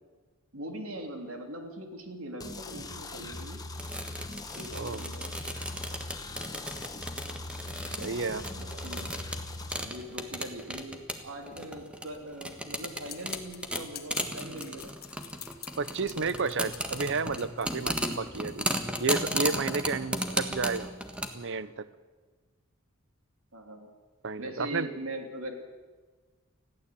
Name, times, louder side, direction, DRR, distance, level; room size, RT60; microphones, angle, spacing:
voice 1, 0.5-3.6 4.5-5.4 8.6-9.1 9.8-14.9 23.5-23.9 24.4-25.5, right 1 dB, 90° right, 4 dB, 3.2 m, -41 dB
sound 1, 2.4-9.8, left 2 dB, 20° left, 1.6 m, -40 dB
sound 2, 3.7-21.3, right 1 dB, 5° right, 1.6 m, -35 dB
voice 2, 4.7-5.0 8.0-8.5 8.7-9.0 15.8-18.7 19.0-20.9 21.3-21.9 24.2-24.9, right 4 dB, 60° right, 15 dB, 0.8 m, -32 dB
sound 3, 13.1-18.1, left 11 dB, 50° left, 1.6 m, -46 dB
20.5 x 15.0 x 8.4 m, 1.4 s
head